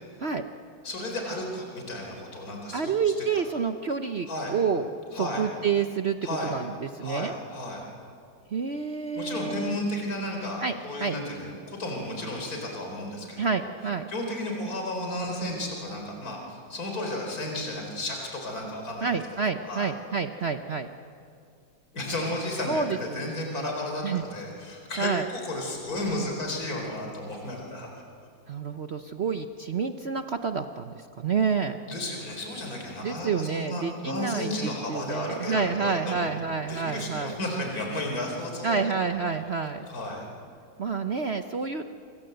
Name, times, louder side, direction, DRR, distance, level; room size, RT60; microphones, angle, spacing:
voice 1, 0.8-2.9 4.3-4.5 5.1-5.4 6.2-6.5 7.0-7.8 9.2-13.6 14.1-19.1 19.6-19.9 21.9-28.0 31.9-36.3 36.7-38.8 39.0-39.3 39.9-40.3, left 1 dB, 45° left, 1 dB, 4.7 m, -33 dB
voice 2, 2.7-6.2 6.5-7.3 8.5-9.8 10.6-11.2 13.4-14.1 19.0-20.9 22.7-23.2 24.0-24.2 25.0-25.3 28.5-31.8 33.0-37.3 38.6-39.9 40.8-41.8, right 5 dB, 55° right, 7 dB, 0.7 m, -29 dB
27.0 x 25.0 x 7.9 m, 2.3 s
omnidirectional pair, 2.1 m